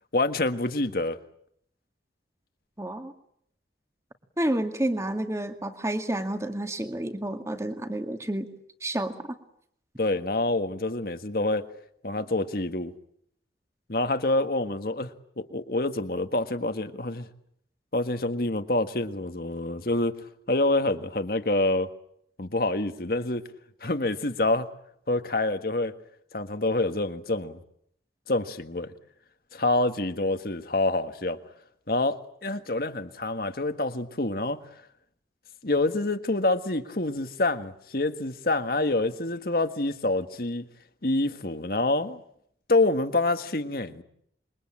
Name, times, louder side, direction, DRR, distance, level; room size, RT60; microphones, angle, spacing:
voice 1, 0.1-1.2 10.0-11.6 12.0-12.9 13.9-15.1 15.4-17.3 17.9-20.2 20.5-21.9 22.4-23.4 23.8-24.7 25.1-25.9 26.3-27.6 28.3-28.9 29.5-31.4 31.9-34.6 35.6-40.6 41.0-42.2 42.7-44.0, left 2 dB, 55° left, 8 dB, 1.6 m, -27 dB
voice 2, 2.8-3.1 4.4-8.5 8.8-9.2, right 1 dB, 15° right, 7 dB, 2.2 m, -29 dB
27.0 x 23.0 x 8.8 m, 0.71 s
head